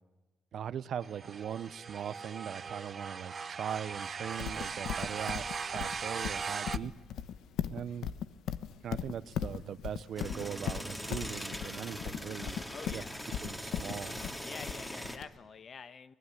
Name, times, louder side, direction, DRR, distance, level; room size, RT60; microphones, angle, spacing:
voice 1, 0.5-5.5 5.7-6.9 7.7-8.1 8.8-12.6 12.9-13.0 13.4-14.2, right 9 dB, 65° right, 16 dB, 1.0 m, -40 dB
sound 1, 1.0-6.8, right 5 dB, 40° right, 0.9 m, -39 dB
Livestock farm animals working animals, 4.4-15.2, left 9 dB, 80° left, 1.1 m, -38 dB
sound 2, 10.2-15.2, equal, 10° left, 3.0 m, -41 dB
voice 2, 12.7-13.2 14.4-16.1, left 6 dB, 50° left, 13 dB, 1.2 m, -47 dB
24.5 x 20.0 x 10.0 m, 1.2 s
cardioid pair, 90°, 0 cm